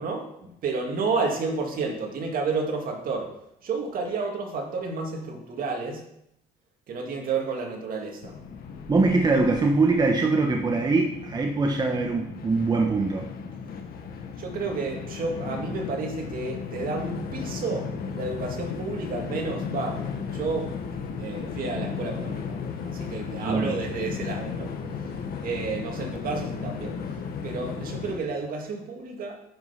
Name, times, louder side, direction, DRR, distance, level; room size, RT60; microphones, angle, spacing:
voice 1, 0.0-6.1 6.9-8.4 9.3-9.4 14.4-20.8 21.2-29.4, right 4 dB, 55° right, 2 dB, 2.2 m, -31 dB
Train, 8.2-28.2, left 6 dB, 65° left, 1.5 m, -35 dB
voice 2, 8.9-13.3 23.5-23.8, right 3 dB, 25° right, 1 dB, 1.2 m, -23 dB
10.5 x 5.5 x 5.8 m, 0.78 s
cardioid pair, 110°, 17 cm